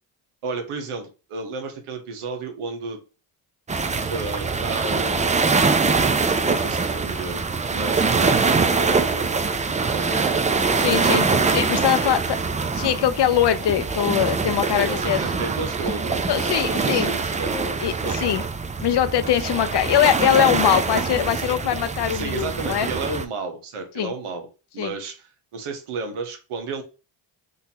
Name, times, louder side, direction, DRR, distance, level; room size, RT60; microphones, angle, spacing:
voice 1, 0.4-3.0 4.1-5.3 6.0-7.4 7.7-9.4 9.9-11.2 12.0-12.2 14.7-18.2 22.1-24.5 24.7-25.3 25.5-26.8, right 3 dB, 85° right, 1.1 m, -32 dB
sound 1, 3.7-23.3, right 4 dB, 15° right, 0.4 m, -23 dB
voice 2, 10.8-12.2 12.7-15.2 16.3-17.1 17.8-18.4 18.8-22.9 24.0-24.1 24.8-24.9, left 10 dB, 55° left, 0.6 m, -22 dB
3.8 x 2.7 x 2.8 m
cardioid pair, 65°, 50 cm